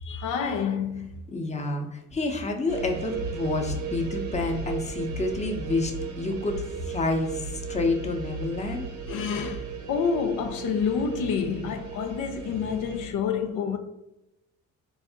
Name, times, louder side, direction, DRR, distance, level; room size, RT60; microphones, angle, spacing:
voice 1, 0.0-1.1 9.1-13.8, left 6 dB, 85° left, 0.5 m, -28 dB
voice 2, 1.3-8.8, left 3 dB, 20° left, 0.7 m, -29 dB
sound 1, 2.7-13.1, right 4 dB, 85° right, 0.8 m, -35 dB
4.0 x 2.6 x 3.5 m
cardioid pair, 90°, 30 cm